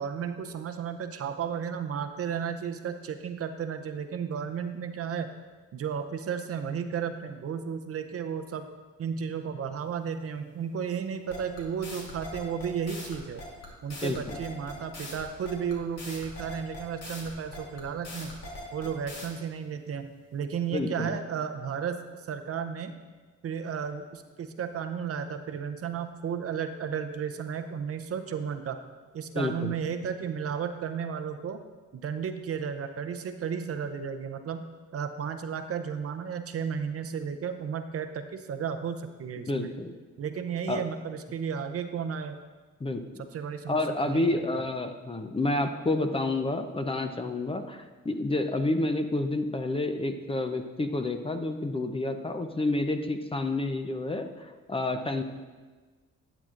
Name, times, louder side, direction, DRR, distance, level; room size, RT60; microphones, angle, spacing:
voice 1, 0.0-5.3 5.7-8.7 9.0-13.4 13.8-18.4 18.7-22.0 22.3-23.0 23.4-28.8 29.1-31.6 31.9-34.7 34.9-39.7 40.2-42.4 43.2-44.7, right 7 dB, 50° right, 8 dB, 0.6 m, -33 dB
sound 1, 11.3-19.3, left 1 dB, 60° left, 2.7 m, -41 dB
voice 2, 14.0-14.4 20.7-21.1 29.3-29.7 39.4-39.9 40.7-40.8 42.8-43.0 43.7-55.2, left 2 dB, 20° left, 7 dB, 0.6 m, -29 dB
12.0 x 8.9 x 2.5 m, 1.4 s
cardioid pair, 90°, 30 cm